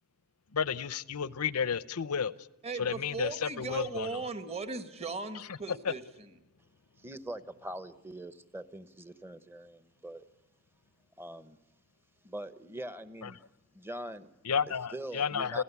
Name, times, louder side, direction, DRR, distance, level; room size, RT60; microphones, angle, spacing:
voice 1, 0.5-2.3 2.8-4.2 5.3-5.6 5.8-5.9 13.2-13.3 14.4-15.6, left 6 dB, 85° left, 18 dB, 0.8 m, -32 dB
voice 2, 2.6-6.3, right 4 dB, 30° right, 9 dB, 1.5 m, -38 dB
voice 3, 7.0-10.2 11.2-11.6 12.2-13.4 13.7-14.3 14.9-15.6, right 1 dB, 10° right, 13 dB, 0.9 m, -43 dB
29.5 x 16.0 x 8.3 m, 0.95 s
head